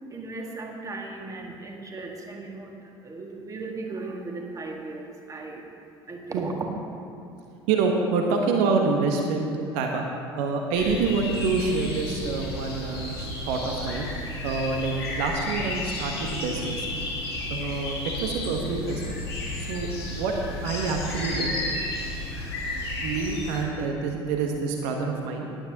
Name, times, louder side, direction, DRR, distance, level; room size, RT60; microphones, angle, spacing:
voice 1, 0.1-2.7 3.0-5.6 6.1-6.5, right 3 dB, 25° right, 1 dB, 1.9 m, -37 dB
voice 2, 7.7-10.1 10.3-14.1 14.4-16.9 17.5-19.2 19.5-19.9 20.2-21.6 23.0-25.5, right 4 dB, 55° right, 2 dB, 1.2 m, -27 dB
sound 1, 10.7-23.6, left 2 dB, 80° left, 2.4 m, -32 dB
17.5 x 11.5 x 2.9 m, 2.7 s
figure-of-eight pair, 60°, 13 cm